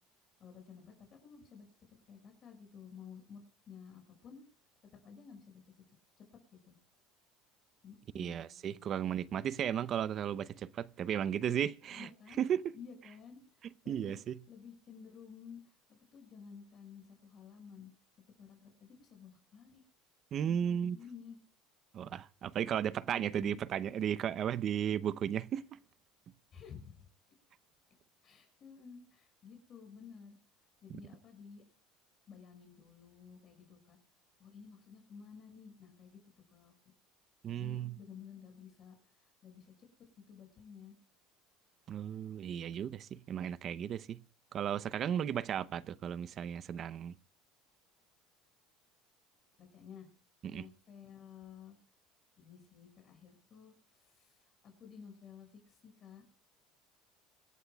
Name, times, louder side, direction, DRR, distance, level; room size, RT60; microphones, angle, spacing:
voice 1, 0.4-1.7 2.1-4.4 5.0-5.6 6.2-6.3 6.6-6.8 7.8-8.8 11.8-12.4 12.7-14.2 14.5-17.9 18.4-19.8 20.4-21.4 23.1-23.6 26.5-27.1 28.2-30.4 30.8-31.6 32.3-34.0 34.4-36.2 36.5-36.7 37.5-39.9 40.3-40.9 49.6-50.1 50.5-51.8 52.4-56.2, left 6 dB, 40° left, 6.2 m, -53 dB
voice 2, 8.1-12.1 12.4-12.6 13.9-14.3 20.3-21.0 21.9-25.6 37.4-38.0 41.9-44.2 44.5-47.1 50.4-50.6, right 9 dB, 40° right, 0.7 m, -35 dB
26.0 x 12.5 x 2.3 m
supercardioid pair, 120°, 0 cm